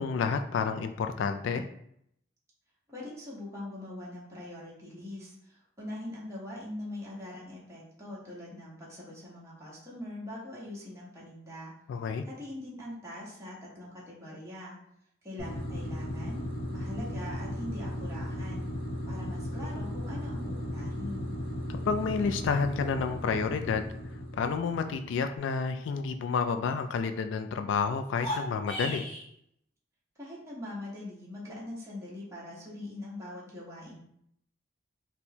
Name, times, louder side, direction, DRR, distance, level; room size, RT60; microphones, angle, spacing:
voice 1, 0.0-1.6 11.9-12.2 21.9-23.9 24.4-29.0, left 5 dB, 80° left, 8 dB, 0.3 m, -30 dB
voice 2, 2.9-11.7 12.2-14.8 15.2-16.4 16.7-18.7 19.1-21.3 30.2-34.0, left 1 dB, 15° right, -7 dB, 1.0 m, -42 dB
sound 1, 15.4-25.2, equal, 50° left, 0.7 m, -36 dB
sound 2, 28.1-29.3, left 1 dB, 30° left, 1.0 m, -35 dB
4.3 x 2.1 x 2.7 m, 0.71 s
head